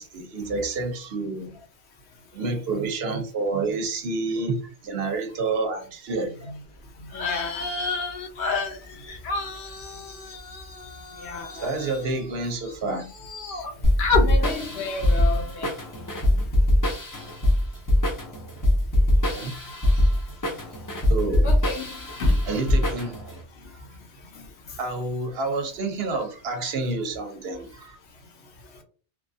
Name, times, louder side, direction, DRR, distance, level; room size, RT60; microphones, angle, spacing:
voice 1, 0.0-1.6 2.3-6.5 7.2-7.3 11.5-13.1 19.2-20.1 21.1-21.5 22.5-23.4 23.7-23.8 24.8-28.0, right 3 dB, 65° right, 0.8 m, -29 dB
voice 2, 7.0-7.7 11.2-11.8 14.2-16.4 21.4-22.4 24.3-24.4, left 3 dB, 75° left, 1.0 m, -34 dB
sound 1, 7.1-12.7 13.0-13.7 14.0-14.3, left 4 dB, 55° left, 0.7 m, -30 dB
sound 2, 13.8-23.4, left 1 dB, 30° left, 0.3 m, -22 dB
2.9 x 2.2 x 2.6 m
omnidirectional pair, 1.2 m